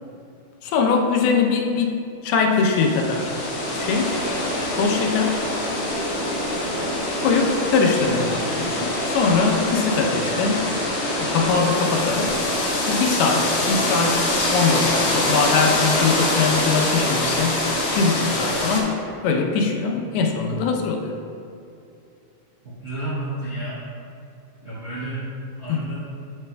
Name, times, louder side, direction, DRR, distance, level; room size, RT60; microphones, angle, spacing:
voice 1, 0.6-2.0 2.2-3.3 3.8-4.1 4.7-5.4 7.2-10.7 11.2-12.4 12.9-17.6 18.0-19.0 19.2-21.1 25.7-25.8, left 5 dB, 85° left, 1 dB, 2.6 m, -22 dB
sound 1, 2.5-18.8, left 1 dB, 50° left, 2.1 m, -24 dB
voice 2, 22.6-23.8 24.6-26.3, right 1 dB, 45° right, -10 dB, 1.2 m, -31 dB
9.2 x 8.2 x 2.2 m, 2.5 s
omnidirectional pair, 4.4 m